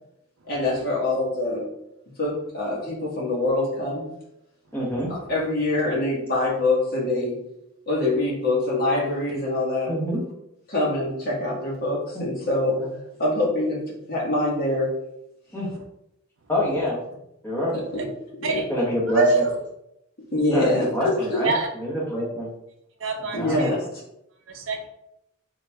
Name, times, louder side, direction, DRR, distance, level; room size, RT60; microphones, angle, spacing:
voice 1, 0.4-1.6 2.2-4.0 5.1-7.4 7.9-9.9 10.7-12.8 13.2-14.9 17.9-18.1 18.4-18.6 20.3-20.9 21.1-21.4 23.3-23.9, left 2 dB, 45° left, -5 dB, 1.5 m, -24 dB
voice 2, 4.7-5.1 9.9-10.2 12.1-12.2 15.5-15.7 16.5-17.0 17.4-17.7 18.7-19.4 20.5-21.5 21.8-22.5 23.3-23.7, left 1 dB, 10° left, -6 dB, 1.3 m, -25 dB
voice 3, 19.1-19.5 21.4-21.7 23.0-23.7 24.5-24.9, right 4 dB, 60° right, 3 dB, 0.6 m, -24 dB
3.9 x 3.1 x 3.4 m, 0.80 s
head